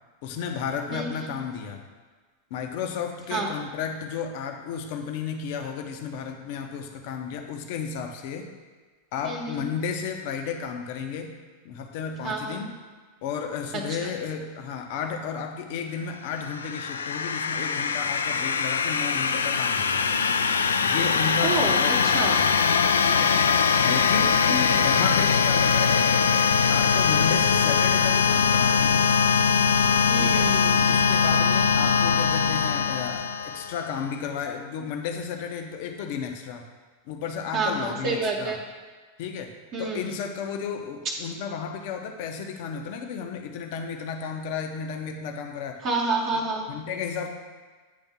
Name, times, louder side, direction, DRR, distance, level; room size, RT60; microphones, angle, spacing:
voice 1, 0.2-1.8 2.5-8.5 9.1-11.3 11.6-12.7 13.2-20.1 20.8-22.6 23.0-23.4 23.7-24.4 24.7-26.1 26.7-29.1 30.2-30.5 30.9-36.7 37.1-38.6 39.2-45.8 46.7-47.3, left 6 dB, 50° left, 4 dB, 0.7 m, -33 dB
voice 2, 9.3-9.7 12.2-12.7 21.4-22.4 24.5-24.9 30.1-30.9 37.5-38.6 39.7-40.0 45.8-46.6, right 3 dB, 40° right, -1 dB, 1.0 m, -29 dB
sound 1, 16.3-33.9, left 6 dB, 70° left, 0.3 m, -22 dB
9.3 x 3.5 x 5.8 m, 1.4 s
figure-of-eight pair, 90°, 0 cm